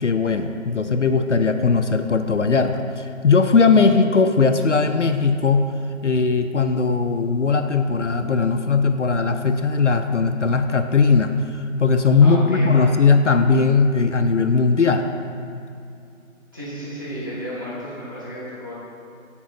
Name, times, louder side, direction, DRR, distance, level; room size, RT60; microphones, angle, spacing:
voice 1, 0.0-5.7 6.0-15.1, left 4 dB, 65° left, 7 dB, 0.5 m, -18 dB
voice 2, 12.2-12.9 16.5-18.7, equal, 15° right, -10 dB, 1.0 m, -33 dB
8.7 x 3.8 x 5.9 m, 2.4 s
figure-of-eight pair, 165°, 40 cm